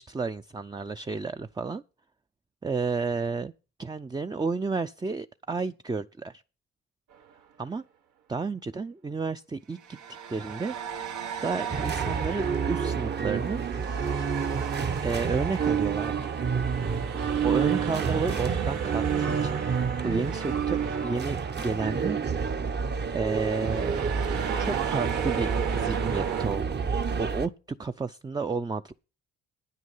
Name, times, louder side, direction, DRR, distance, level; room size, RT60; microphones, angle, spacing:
voice 1, 0.0-1.8 2.6-3.5 3.8-6.4 7.6-7.8 8.3-10.0 10.3-10.8 11.4-13.6 15.0-16.3 17.4-22.2 23.1-24.0 24.6-26.7 27.2-27.5 27.8-28.9, right 4 dB, 15° right, 0.5 m, -31 dB
sound 1, 7.1-7.3 9.8-22.2 22.4-22.6 23.3-26.5, right 8 dB, 80° right, 1.7 m, -36 dB
sound 2, 11.7-27.5, right 6 dB, 35° right, 1.0 m, -29 dB
9.5 x 9.4 x 5.5 m
cardioid pair, 90°, 30 cm